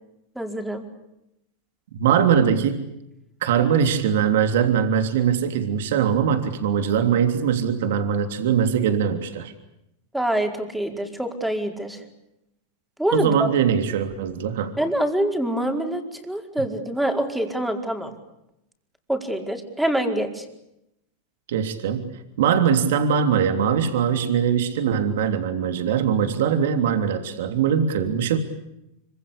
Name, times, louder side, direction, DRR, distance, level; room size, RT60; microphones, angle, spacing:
voice 1, 0.3-0.8 10.1-12.0 13.0-13.5 14.8-18.1 19.1-20.4, right 1 dB, 5° right, 4 dB, 4.8 m, -25 dB
voice 2, 1.9-2.9 3.4-9.5 13.1-14.7 21.5-22.1 22.4-28.4, right 8 dB, 75° right, 8 dB, 3.3 m, -21 dB
26.0 x 25.5 x 8.5 m, 0.86 s
hypercardioid pair, 110°, 0 cm